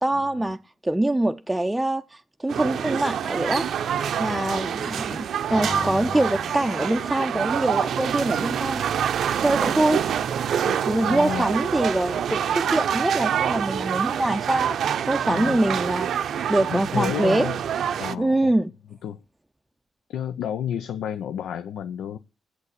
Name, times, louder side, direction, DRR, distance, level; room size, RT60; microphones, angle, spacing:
voice 1, 0.0-3.7 4.2-8.8 9.4-10.0 10.9-14.8 15.1-16.1 16.5-17.5 18.2-18.7, right 1 dB, 10° right, 0.5 m, -24 dB
sound 1, 2.4-7.8, left 5 dB, 65° left, 0.9 m, -47 dB
sound 2, 2.5-18.1, right 8 dB, 75° right, 0.5 m, -26 dB
voice 2, 4.2-4.7 9.7-9.8 10.6-11.5 15.3-15.8 16.6-17.6 18.0-18.5 19.0-19.2 20.1-22.2, left 9 dB, 85° left, 0.5 m, -31 dB
sound 3, 5.5-8.4, left 2 dB, 30° left, 2.1 m, -37 dB
8.3 x 7.8 x 8.1 m
cardioid pair, 70°, 0 cm